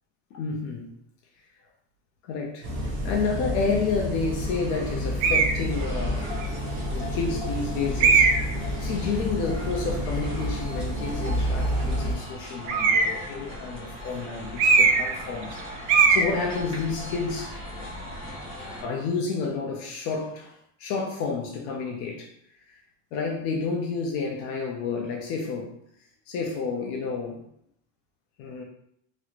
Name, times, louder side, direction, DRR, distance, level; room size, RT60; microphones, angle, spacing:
voice 1, 0.3-0.9 2.2-6.4 6.8-8.3 8.7-17.5 18.8-22.3 22.7-22.8 23.1-25.8 26.3-27.4 28.4-28.6, left 4 dB, 40° left, 0 dB, 0.5 m, -30 dB
sound 1, 2.6-12.1, equal, 35° right, 0.8 m, -29 dB
sound 2, 5.2-5.6 6.4-6.5 8.0-8.5 12.7-13.3 14.6-15.2 15.4-15.6 15.9-16.3, right 5 dB, 70° right, 0.6 m, -19 dB
sound 3, 5.7-18.8, equal, 15° right, 1.1 m, -39 dB
3.0 x 2.9 x 2.4 m, 0.70 s
supercardioid pair, 165°, 39 cm